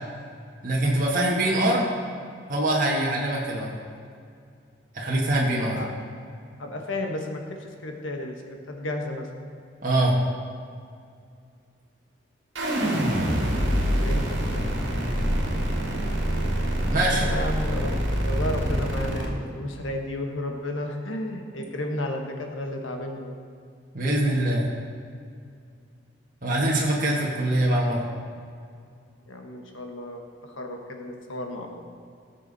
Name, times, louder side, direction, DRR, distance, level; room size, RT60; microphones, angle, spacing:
voice 1, 0.6-1.8 2.5-3.7 4.9-5.8 9.8-10.2 16.9-17.3 23.9-24.7 26.4-28.0, right 1 dB, 45° right, -4 dB, 1.7 m, -23 dB
voice 2, 5.6-5.9 6.6-8.4 8.7-9.3 14.0-14.7 17.2-23.4 29.3-31.8, left 1 dB, 85° left, 3 dB, 1.4 m, -33 dB
sound 1, 12.5-19.3, equal, 70° right, 2.2 m, -25 dB
17.5 x 7.2 x 4.2 m, 2.3 s
head